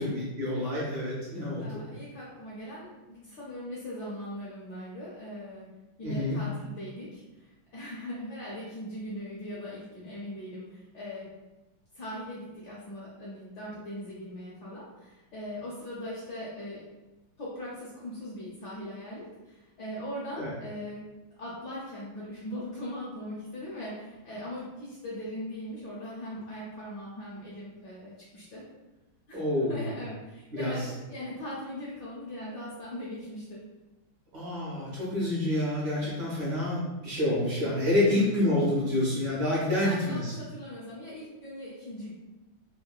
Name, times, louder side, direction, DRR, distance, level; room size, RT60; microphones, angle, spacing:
voice 1, 0.0-1.8 6.0-6.4 20.4-20.5 29.3-29.9 30.5-30.9 34.3-40.3, left 1 dB, 65° right, -6 dB, 1.3 m, -28 dB
voice 2, 1.6-5.7 6.0-11.3 11.9-16.8 17.4-21.1 21.4-28.6 29.3-29.4 29.7-33.6 37.8-38.2 39.5-42.1, left 1 dB, 70° left, -7 dB, 1.0 m, -40 dB
3.6 x 2.1 x 2.2 m, 1.1 s
omnidirectional pair, 2.3 m